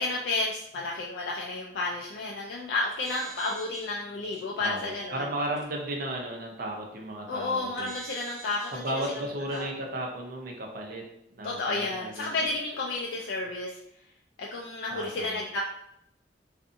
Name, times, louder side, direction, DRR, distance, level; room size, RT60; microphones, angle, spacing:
voice 1, 0.0-5.2 7.3-9.2 9.5-9.7 11.4-13.8 14.4-15.6, left 2 dB, 70° left, -2 dB, 0.3 m, -31 dB
sound 1, 2.9-3.9 4.3-4.4 5.6-5.7 7.8-9.2 9.5-9.6, right 4 dB, 5° left, 1.3 m, -45 dB
voice 2, 4.6-7.9 8.7-12.3 14.9-15.4, right 1 dB, 55° right, 0 dB, 0.6 m, -35 dB
2.5 x 2.5 x 2.5 m, 0.79 s
head